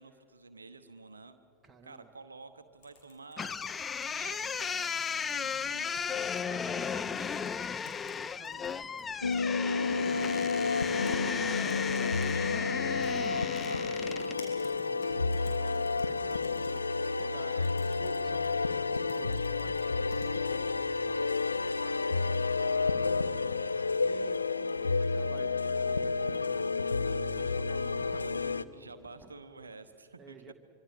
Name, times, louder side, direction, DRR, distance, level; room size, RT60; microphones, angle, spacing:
voice 1, 0.0-1.4 1.8-3.6 4.1-7.5 11.2-11.6 17.2-17.7 21.7-23.8 28.4-30.5, right 4 dB, 75° right, 9 dB, 1.0 m, -51 dB
voice 2, 1.6-2.1 5.4-5.7 6.5-7.1 7.8-10.2 11.0-22.8 24.0-29.3 30.2-30.5, right 4 dB, 10° right, 3 dB, 2.1 m, -55 dB
sound 1, 2.8-5.3 5.8-6.4 6.8-6.9 7.5-8.2 8.5-9.5 10.2-10.5 10.8-12.3 13.0-13.3 13.6-20.3, left 4 dB, 50° left, 5.7 m, -53 dB
sound 2, 3.4-14.4, left 6 dB, 20° left, 0.5 m, -35 dB
sound 3, 9.2-28.6, left 4 dB, 80° left, 0.5 m, -30 dB
25.0 x 24.5 x 6.8 m, 2.4 s
figure-of-eight pair, 90°, 0 cm